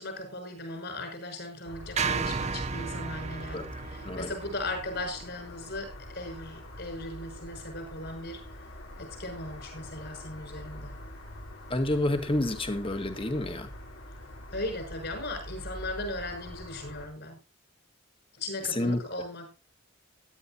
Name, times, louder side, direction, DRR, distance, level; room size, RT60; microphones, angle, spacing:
voice 1, 0.0-8.4 9.0-10.9 14.5-17.4 18.4-19.5, left 2 dB, 60° left, 5 dB, 6.2 m, -38 dB
sound 1, 1.6-17.1, left 1 dB, 85° left, 3.8 m, -45 dB
sound 2, 2.0-6.3, right 5 dB, 35° right, 0.6 m, -34 dB
voice 2, 4.0-4.3 11.7-13.7 18.7-19.0, left 1 dB, 25° left, 8 dB, 1.7 m, -29 dB
16.5 x 11.5 x 2.8 m, 0.29 s
head